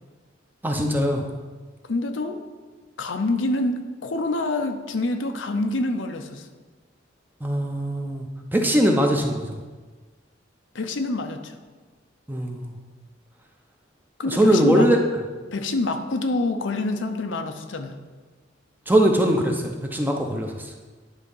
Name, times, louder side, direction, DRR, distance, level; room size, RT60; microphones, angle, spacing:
voice 1, 0.6-1.2 7.4-9.6 12.3-12.7 14.3-15.0 18.9-20.6, right 1 dB, 10° right, 2 dB, 0.7 m, -21 dB
voice 2, 1.8-2.4 3.0-6.5 10.7-11.6 14.2-14.9 15.5-18.0, left 2 dB, 80° left, 6 dB, 0.7 m, -26 dB
9.9 x 3.7 x 5.5 m, 1.3 s
head